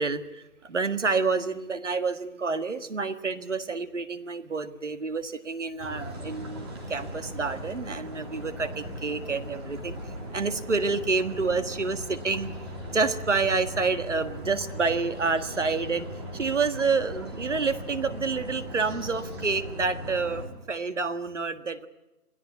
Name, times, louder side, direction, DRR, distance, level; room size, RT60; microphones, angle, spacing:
voice 1, 0.0-12.5 12.9-16.1 16.3-21.9, right 4 dB, 50° right, 10 dB, 1.7 m, -28 dB
sound 1, 5.8-20.5, equal, 15° right, 2.8 m, -38 dB
28.0 x 18.0 x 8.3 m, 1.0 s
figure-of-eight pair, 175°, 46 cm